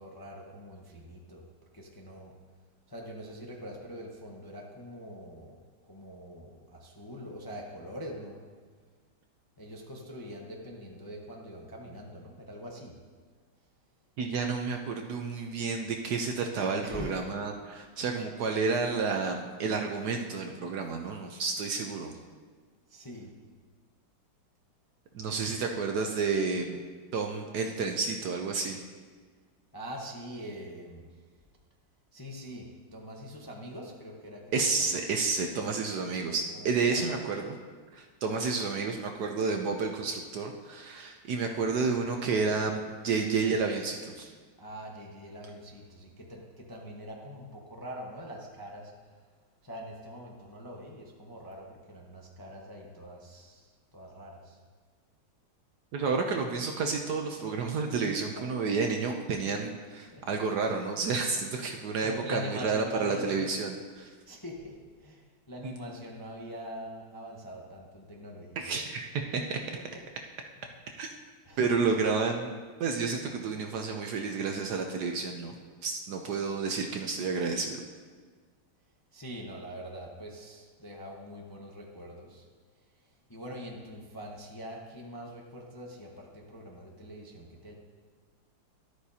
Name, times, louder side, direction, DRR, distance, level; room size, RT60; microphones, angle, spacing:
voice 1, 0.0-1.5 1.7-2.4 2.9-5.6 5.9-8.4 9.6-13.0 16.8-17.3 22.9-23.4 29.7-31.1 32.1-34.7 36.5-37.2 41.5-41.7 42.2-42.5 44.6-49.2 49.6-54.6 60.1-60.2 62.0-63.6 64.3-68.6 69.8-70.0 71.4-71.7 79.1-82.5 83.3-87.7, equal, 15° left, -2 dB, 0.7 m, -43 dB
voice 2, 14.2-22.1 25.1-26.8 27.1-28.8 34.5-37.5 37.9-44.3 55.9-64.1 65.6-65.7 68.6-69.0 69.3-69.6 71.0-71.1 71.6-72.5 72.8-75.5 75.8-77.8, right 4 dB, 65° right, 3 dB, 1.1 m, -30 dB
13.0 x 12.0 x 2.8 m, 1.5 s
omnidirectional pair, 2.2 m